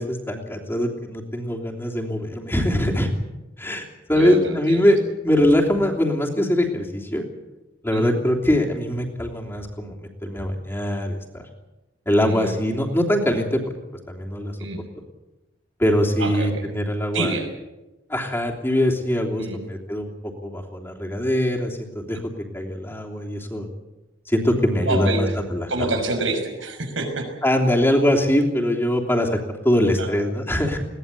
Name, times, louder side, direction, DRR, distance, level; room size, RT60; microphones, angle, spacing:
voice 1, 0.0-3.1 3.6-7.2 7.8-11.4 12.0-13.6 14.1-14.5 15.8-17.3 18.1-20.1 20.4-22.2 22.5-23.6 24.3-25.7 27.4-29.4 29.6-30.8, left 1 dB, 10° left, 0 dB, 3.1 m, -22 dB
voice 2, 4.1-4.9 7.9-8.1 12.2-12.6 14.6-14.8 16.2-16.6 17.1-17.5 19.4-19.6 24.8-25.3 25.7-27.3 30.0-30.1, right 2 dB, 90° right, 4 dB, 6.1 m, -27 dB
21.5 x 18.0 x 8.4 m, 1.0 s
head